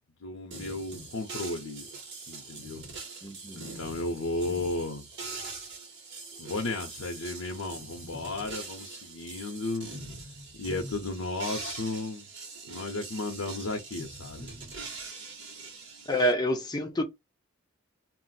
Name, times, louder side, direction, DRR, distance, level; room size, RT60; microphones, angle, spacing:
voice 1, 0.2-1.9 2.3-2.8 3.5-5.1 6.4-9.9 10.6-12.3 12.7-14.5, left 2 dB, 85° left, 0.7 m, -34 dB
sound 1, 0.5-16.3, right 3 dB, 60° right, 1.1 m, -43 dB
voice 2, 3.2-3.7 16.1-17.0, equal, 20° left, 0.6 m, -28 dB
2.4 x 2.0 x 3.9 m
head